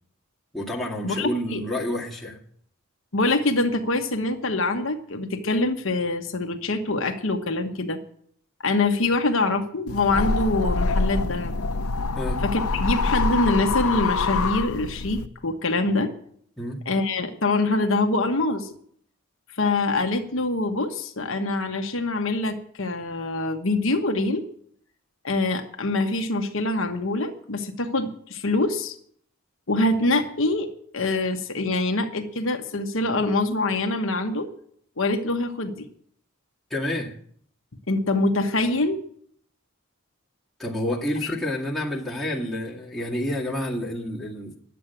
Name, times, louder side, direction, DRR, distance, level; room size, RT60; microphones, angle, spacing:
voice 1, 0.5-2.4 12.1-12.4 16.6-16.8 36.7-37.1 40.6-44.6, left 1 dB, ahead, 2.0 m, -29 dB
voice 2, 1.0-1.6 3.1-8.0 8.6-11.5 12.4-16.1 16.9-18.7 19.6-24.4 25.2-29.0 29.7-30.7 30.9-34.5 35.0-35.8 37.9-39.0 41.2-41.4, left 2 dB, 60° left, 1.1 m, -24 dB
sound 1, 9.9-15.3, left 3 dB, 80° left, 0.7 m, -25 dB
10.5 x 7.7 x 9.0 m
head